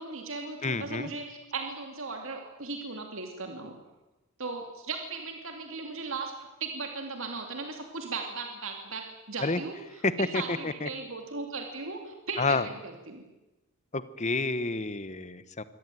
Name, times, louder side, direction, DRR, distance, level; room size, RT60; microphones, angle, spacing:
voice 1, 0.0-3.7 4.4-6.3 6.6-13.2, right 4 dB, 60° right, 3 dB, 2.5 m, -37 dB
voice 2, 0.6-1.1 9.4-9.6 10.0-10.9 12.4-12.7 13.9-15.6, left 3 dB, 30° left, 14 dB, 1.1 m, -29 dB
24.5 x 18.0 x 9.3 m, 1.1 s
head